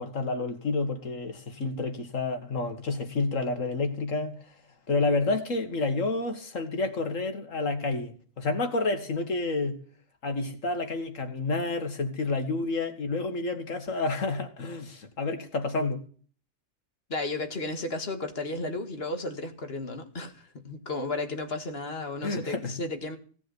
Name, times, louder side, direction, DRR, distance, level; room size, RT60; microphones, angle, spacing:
voice 1, 0.0-4.4 4.9-9.8 10.2-16.0 22.2-22.7, left 3 dB, 90° left, 2.2 m, -29 dB
voice 2, 17.1-23.2, left 2 dB, 50° left, 2.1 m, -33 dB
17.0 x 7.3 x 7.1 m
omnidirectional pair, 1.3 m